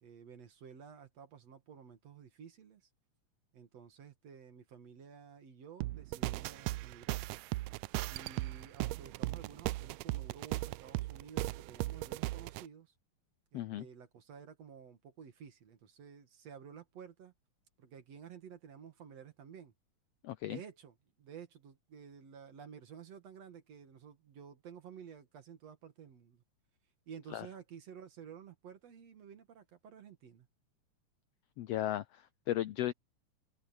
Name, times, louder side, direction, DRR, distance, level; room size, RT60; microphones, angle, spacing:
voice 1, 0.0-2.8 3.5-7.2 8.1-12.9 13.5-17.3 17.8-19.7 20.4-26.4 27.1-30.5, right 7 dB, 60° right, 3.0 m, -52 dB
sound 1, 5.8-12.6, right 18 dB, 85° right, 1.4 m, -37 dB
voice 2, 13.5-13.8 20.2-20.6 27.3-27.5 31.6-32.9, left 13 dB, 80° left, 1.4 m, -36 dB
omnidirectional pair, 3.5 m